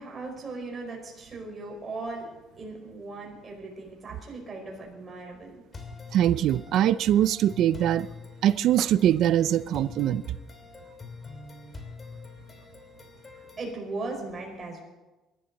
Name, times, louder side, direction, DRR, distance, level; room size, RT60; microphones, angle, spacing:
voice 1, 0.0-2.3 2.6-5.5 13.6-14.8, right 3 dB, 25° right, 4.9 m, -38 dB
sound 1, 5.7-13.7, left 4 dB, 25° left, 2.7 m, -45 dB
voice 2, 6.1-8.1 8.4-10.2, right 11 dB, 60° right, 0.4 m, -22 dB
22.5 x 12.5 x 4.1 m
cardioid pair, 140°, 0 cm